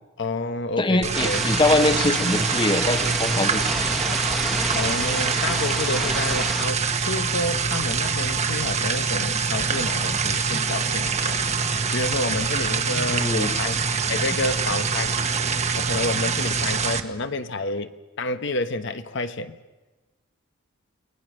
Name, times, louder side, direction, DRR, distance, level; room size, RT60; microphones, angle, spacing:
voice 1, 0.2-1.4 4.7-11.4 11.9-13.8 14.1-15.1 15.8-19.6, left 2 dB, 60° left, 1.1 m, -29 dB
voice 2, 0.8-4.2 13.1-13.5, left 2 dB, 25° left, 1.2 m, -23 dB
sound 1, 1.0-17.0, right 5 dB, 35° right, 1.3 m, -25 dB
sound 2, 1.1-6.6, equal, ahead, 1.4 m, -30 dB
29.0 x 19.5 x 6.4 m
head